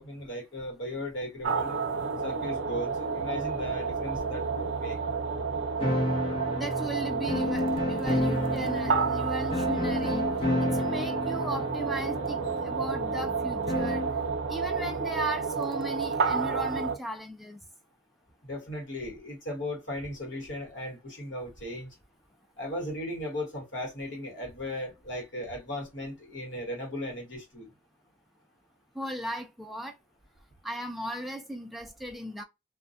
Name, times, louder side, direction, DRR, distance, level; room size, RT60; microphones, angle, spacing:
voice 1, 0.0-1.7 2.2-5.0 18.4-21.9 22.6-27.7, left 1 dB, 65° left, 1.2 m, -37 dB
sound 1, 1.4-17.0, right 5 dB, 75° right, 0.5 m, -30 dB
sound 2, 5.8-14.2, left 1 dB, 30° left, 0.8 m, -31 dB
voice 2, 6.5-10.3 10.6-14.0 14.5-17.6 28.9-29.9 30.6-32.4, right 1 dB, ahead, 0.3 m, -36 dB
2.3 x 2.1 x 2.5 m
head